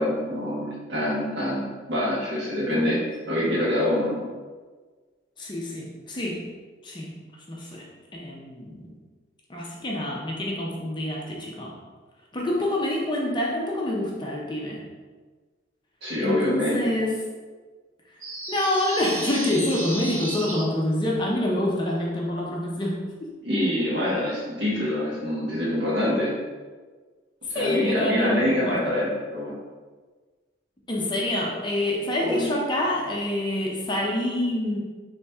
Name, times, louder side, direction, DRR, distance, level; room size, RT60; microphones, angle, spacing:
voice 1, 0.0-3.0 3.3-4.3 16.0-16.8 23.4-26.3 27.5-29.6 32.2-32.5, left 1 dB, 65° right, -6 dB, 1.4 m, -25 dB
voice 2, 2.6-3.0 5.4-6.5 6.8-7.2 7.5-7.9 8.1-8.9 9.5-11.7 12.3-14.8 16.2-17.2 18.5-23.3 27.5-28.8 30.9-34.8, left 1 dB, 25° left, -2 dB, 0.6 m, -27 dB
sound 1, 18.2-20.6, right 1 dB, 40° right, 0.7 m, -34 dB
4.1 x 3.1 x 3.4 m, 1.4 s
head